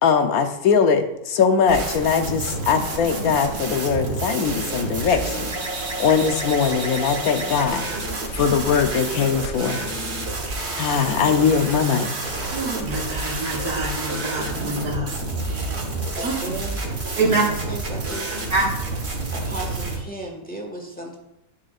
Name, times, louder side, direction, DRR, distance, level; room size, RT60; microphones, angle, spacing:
voice 1, 0.0-5.5 6.0-7.8 8.3-9.8 10.8-12.3, left 6 dB, 75° left, 7 dB, 1.2 m, -21 dB
sound 1, 1.7-20.0, right 2 dB, 45° right, 1.6 m, -29 dB
voice 2, 12.5-15.2 15.4-15.8 16.2-16.3 17.2-17.4 18.5-18.6, right 3 dB, 85° right, -2 dB, 2.2 m, -25 dB
voice 3, 16.2-16.9 17.3-18.5 19.3-21.2, right 1 dB, 5° left, -1 dB, 1.3 m, -35 dB
9.9 x 7.6 x 2.4 m, 0.86 s
omnidirectional pair, 1.6 m